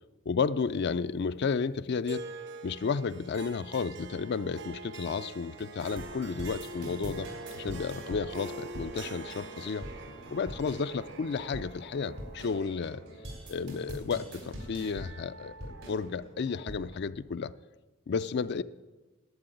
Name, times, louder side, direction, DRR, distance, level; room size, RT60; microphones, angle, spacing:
voice 1, 0.3-2.2 2.6-9.9 10.3-13.0 13.5-17.5 18.1-18.6, left 5 dB, 55° left, 0.4 m, -32 dB
Harp, 2.1-12.6, right 3 dB, 55° right, 0.8 m, -44 dB
sound 1, 5.8-17.0, equal, 80° right, 4.2 m, -44 dB
11.5 x 8.7 x 9.1 m
head